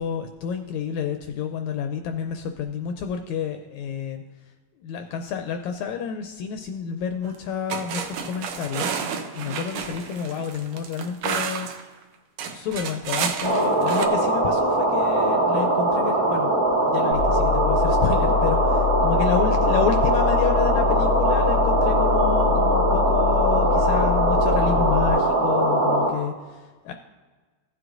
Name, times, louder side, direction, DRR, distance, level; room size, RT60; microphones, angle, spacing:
voice 1, 0.0-4.2 4.8-8.9 9.3-11.8 12.5-16.5 16.9-26.9, left 7 dB, 80° left, 6 dB, 1.7 m, -29 dB
sound 1, 7.2-7.4 7.7-11.8 12.4-14.1, right 7 dB, 70° right, 1.7 m, -30 dB
sound 2, 13.4-26.1, right 2 dB, 30° right, 1.3 m, -21 dB
sound 3, 17.1-25.1, left 11 dB, 90° right, 2.9 m, -25 dB
15.0 x 7.8 x 2.6 m, 1.3 s
omnidirectional pair, 3.8 m